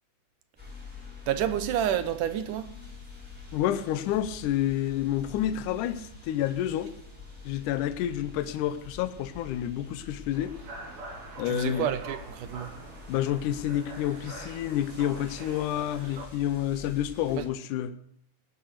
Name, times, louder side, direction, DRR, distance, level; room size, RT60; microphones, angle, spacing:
sound 1, 0.6-17.5, left 4 dB, 5° right, 5.8 m, -47 dB
voice 1, 1.3-2.7 11.4-12.7 17.3-17.5, right 10 dB, 80° right, 2.5 m, -29 dB
voice 2, 3.5-6.9 7.5-10.5 11.4-11.9 13.1-17.9, left 11 dB, 80° left, 2.2 m, -29 dB
sound 2, 10.3-16.3, right 2 dB, 60° right, 3.1 m, -44 dB
18.5 x 9.2 x 6.6 m
omnidirectional pair, 3.7 m